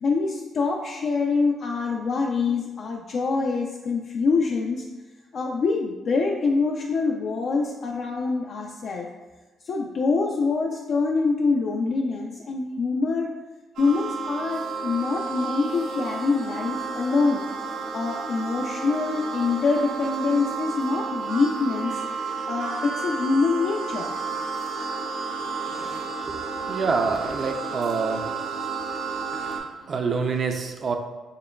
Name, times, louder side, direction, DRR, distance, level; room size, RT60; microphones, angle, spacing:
voice 1, 0.0-4.8 5.3-9.1 9.6-13.3 13.8-17.5 17.9-22.0 22.5-24.1 26.5-26.6, left 4 dB, 60° left, 0 dB, 0.3 m, -25 dB
sound 1, 13.8-29.6, right 4 dB, 85° right, 0.7 m, -31 dB
voice 2, 26.7-28.3 29.3-29.6 29.9-31.0, right 4 dB, 50° right, 5 dB, 0.4 m, -26 dB
6.5 x 2.2 x 2.2 m, 1.2 s
cardioid pair, 90°, 0 cm